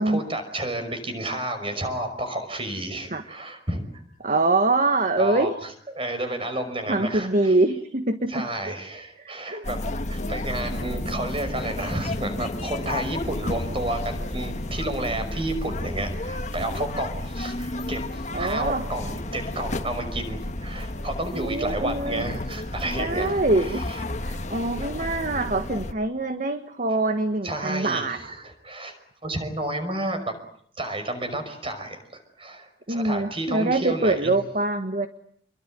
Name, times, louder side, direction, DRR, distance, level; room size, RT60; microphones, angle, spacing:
voice 1, 0.0-3.8 5.2-7.5 8.3-9.8 10.1-23.4 23.7-24.0 27.4-29.0 29.2-30.3 30.8-34.3, right 1 dB, 30° right, 8 dB, 5.6 m, -31 dB
voice 2, 4.2-5.5 6.9-8.5 9.2-9.7 18.3-18.8 21.3-22.2 23.0-23.8 24.2-28.3 32.9-35.1, right 2 dB, 45° right, 8 dB, 1.6 m, -24 dB
sound 1, 9.6-25.9, left 1 dB, 45° left, 1.6 m, -32 dB
28.0 x 23.0 x 9.3 m, 0.66 s
head